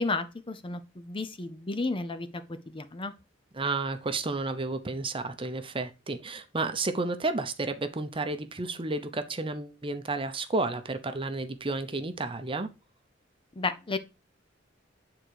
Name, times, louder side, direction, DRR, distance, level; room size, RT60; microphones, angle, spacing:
voice 1, 0.0-3.1 13.6-14.0, left 3 dB, 25° left, 0.6 m, -32 dB
voice 2, 3.5-12.7, right 3 dB, 25° right, 0.7 m, -31 dB
8.5 x 3.9 x 4.6 m
head